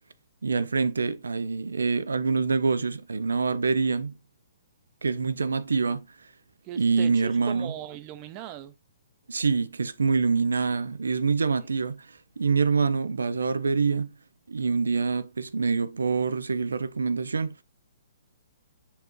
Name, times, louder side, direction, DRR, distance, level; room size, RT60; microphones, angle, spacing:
voice 1, 0.4-4.1 5.0-6.1 6.8-7.7 9.3-14.1 14.5-17.5, right 4 dB, 85° right, 0.4 m, -25 dB
voice 2, 6.6-8.7 10.7-10.8, right 11 dB, 35° right, 0.6 m, -39 dB
7.0 x 2.4 x 3.0 m
hypercardioid pair, 135°, 0 cm